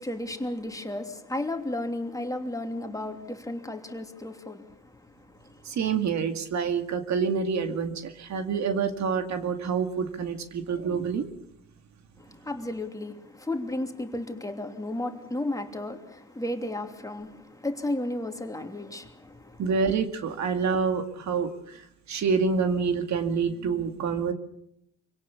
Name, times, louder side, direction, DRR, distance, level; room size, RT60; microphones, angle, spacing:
voice 1, 0.0-5.8 12.2-19.6, left 1 dB, 10° left, 3.0 m, -34 dB
voice 2, 5.6-11.3 19.6-24.3, right 5 dB, 65° right, 2.2 m, -27 dB
25.5 x 17.5 x 7.2 m
cardioid pair, 90°, 30 cm